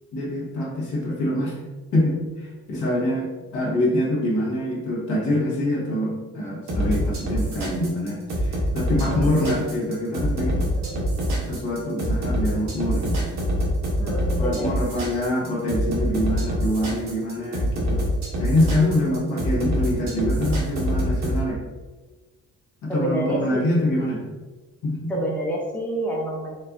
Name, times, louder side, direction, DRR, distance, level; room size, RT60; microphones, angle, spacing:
voice 1, 0.1-1.6 1.9-3.3 3.5-10.7 11.4-13.3 14.4-18.0 18.4-21.6 22.8-24.2 24.8-25.1, left 1 dB, 75° left, -3 dB, 1.1 m, -25 dB
sound 1, 6.7-21.4, equal, 65° right, 1.0 m, -25 dB
voice 2, 9.1-9.6 10.7-11.1 14.0-14.7 15.0-15.2 19.0-19.4 22.9-23.7 25.1-26.5, right 1 dB, 5° left, -4 dB, 0.8 m, -28 dB
4.2 x 2.5 x 2.3 m, 1.3 s
cardioid pair, 90°, 30 cm